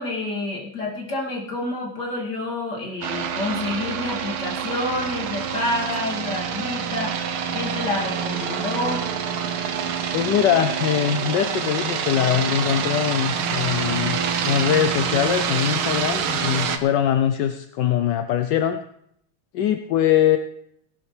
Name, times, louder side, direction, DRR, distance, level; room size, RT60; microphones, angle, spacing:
voice 1, 0.0-9.0, left 2 dB, 50° left, -3 dB, 3.1 m, -28 dB
sound 1, 3.0-16.8, right 7 dB, 75° right, 1.8 m, -26 dB
voice 2, 10.1-18.8 19.5-20.4, left 10 dB, 70° left, 9 dB, 1.0 m, -22 dB
18.0 x 12.0 x 3.3 m, 0.72 s
omnidirectional pair, 2.4 m